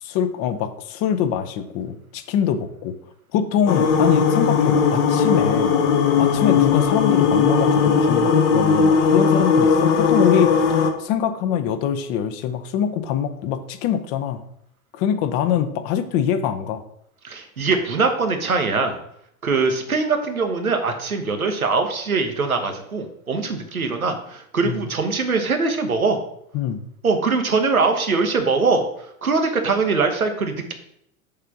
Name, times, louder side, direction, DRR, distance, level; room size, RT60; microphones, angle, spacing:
voice 1, 0.0-2.9 3.3-5.8 6.2-14.4 14.9-16.9 24.6-24.8 26.5-26.9, left 8 dB, 35° left, 10 dB, 0.6 m, -24 dB
sound 1, 3.7-10.9, left 6 dB, 55° left, 1.0 m, -18 dB
voice 2, 17.2-19.0 19.4-26.2 27.0-30.7, right 4 dB, 85° right, 5 dB, 1.0 m, -22 dB
6.6 x 3.4 x 5.9 m, 0.75 s
figure-of-eight pair, 85°, 41 cm